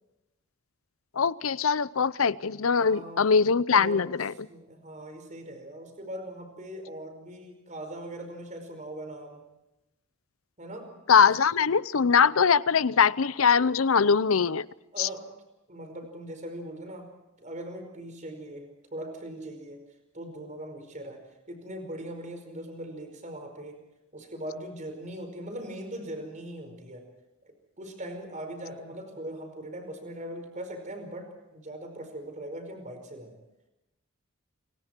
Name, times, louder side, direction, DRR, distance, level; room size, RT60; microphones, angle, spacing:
voice 1, 1.2-4.3 11.1-14.7 15.0-15.1, left 6 dB, 90° left, 0.7 m, -22 dB
voice 2, 2.7-3.3 3.7-4.0 4.5-9.4 10.6-10.9 11.2-11.3 14.9-15.3 15.7-17.1 17.4-19.8 20.1-21.2 21.5-23.8 24.1-27.0 27.4-33.3, right 1 dB, 35° right, 5.1 m, -40 dB
28.5 x 24.5 x 4.6 m
head